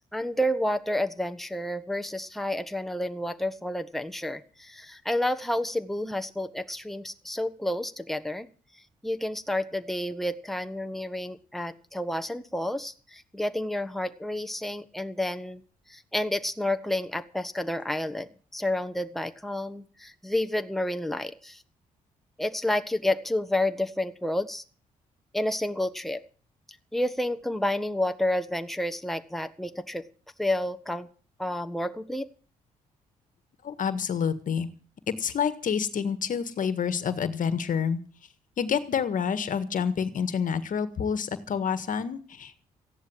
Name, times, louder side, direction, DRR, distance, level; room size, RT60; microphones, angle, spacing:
voice 1, 0.1-8.5 9.0-15.6 15.9-21.6 22.4-24.6 25.3-26.2 26.9-30.0 30.4-31.1 31.4-32.3, left 1 dB, ahead, 8 dB, 1.5 m, -30 dB
voice 2, 33.6-34.7 35.1-38.0 38.6-42.6, left 7 dB, 60° left, 13 dB, 1.7 m, -28 dB
15.5 x 11.0 x 7.9 m, 0.39 s
supercardioid pair, 55°, 15 cm